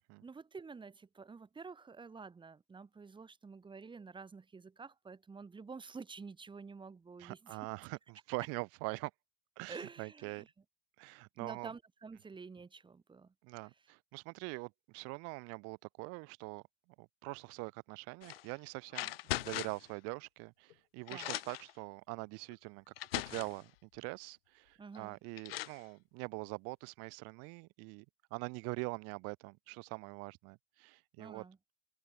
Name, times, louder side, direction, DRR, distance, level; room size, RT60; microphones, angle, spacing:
voice 1, 0.2-7.6 9.7-10.5 11.4-13.3 21.1-21.4 24.8-25.2 31.2-31.6, right 4 dB, 15° right, 1.9 m, -49 dB
voice 2, 7.2-9.1 9.6-10.4 11.0-11.7 13.4-16.6 17.0-28.0 28.3-31.4, right 31 dB, 55° right, 1.0 m, -44 dB
sound 1, 18.2-18.5 18.9-19.9 20.7-20.8 21.1-21.7 22.5-22.6 23.0-23.6 24.9-25.0 25.4-25.8, left 16 dB, 80° left, 0.6 m, -39 dB
open air
hypercardioid pair, 90°, 29 cm